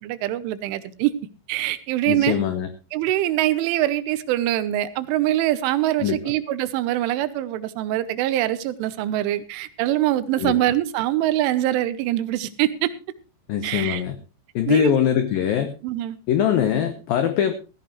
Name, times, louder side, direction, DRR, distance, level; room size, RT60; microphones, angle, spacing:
voice 1, 0.0-1.1 1.5-2.4 2.9-12.9 13.6-14.0 14.7-14.9 15.8-16.2, right 14 dB, 85° right, 14 dB, 3.3 m, -23 dB
voice 2, 2.1-2.7 6.0-6.2 10.4-10.6 13.5-14.2 14.6-15.7 16.3-17.5, left 9 dB, 90° left, 9 dB, 2.0 m, -22 dB
16.0 x 15.0 x 3.1 m, 0.30 s
omnidirectional pair, 5.5 m